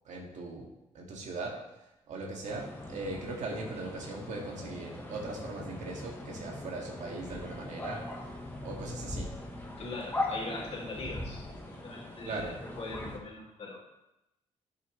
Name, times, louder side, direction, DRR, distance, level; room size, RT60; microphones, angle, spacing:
voice 1, 0.1-0.7 0.9-1.6 2.1-8.0 8.6-9.3 12.3-12.6, right 3 dB, 75° right, -1 dB, 1.9 m, -39 dB
sound 1, 2.5-13.2, left 2 dB, 15° left, 1.2 m, -40 dB
voice 2, 9.8-13.8, left 2 dB, 55° left, -6 dB, 2.3 m, -41 dB
11.5 x 5.8 x 3.1 m, 0.92 s
cardioid pair, 120°, 12 cm